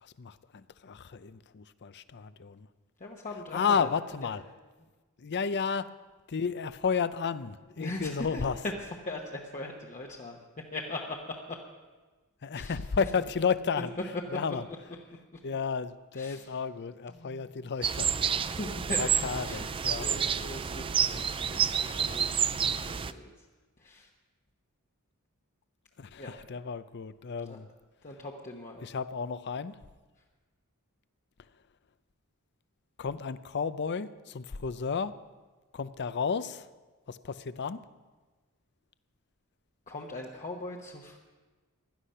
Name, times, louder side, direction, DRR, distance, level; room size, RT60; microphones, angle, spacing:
voice 1, 0.0-2.7 3.5-4.4 5.2-5.9 6.3-8.6 12.4-13.9 14.3-14.6 15.4-18.3 19.0-20.1 22.6-22.8 26.0-27.7 28.8-29.8 33.0-35.1 35.7-36.7 37.1-37.8, left 6 dB, 50° left, 14 dB, 0.6 m, -32 dB
voice 2, 3.0-3.9 4.2-4.4 7.8-8.7 9.1-11.6 12.5-12.8 13.8-13.9 15.3-15.4 16.2-16.5 17.1-17.7 18.4-19.7 20.0-22.4 22.8-23.3 23.8-24.1 26.2-26.3 27.4-27.6 28.0-28.8 39.9-41.2, left 2 dB, 35° left, -1 dB, 1.1 m, -40 dB
sound 1, 17.8-23.1, right 7 dB, 25° right, 0.4 m, -29 dB
16.5 x 11.5 x 5.6 m, 1.3 s
head